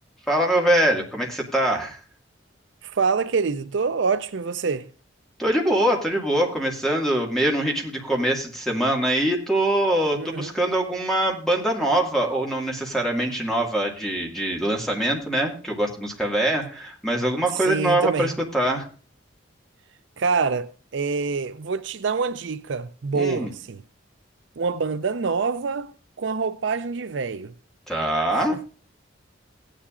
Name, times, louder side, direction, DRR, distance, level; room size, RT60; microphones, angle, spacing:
voice 1, 0.3-2.0 5.4-18.8 23.1-23.5 27.9-28.6, right 1 dB, ahead, 2.0 m, -23 dB
voice 2, 2.8-4.9 10.2-10.5 17.5-18.3 20.2-23.8 24.6-25.9 26.2-27.5 28.3-28.6, right 5 dB, 70° right, 0.5 m, -26 dB
16.5 x 10.0 x 2.5 m
head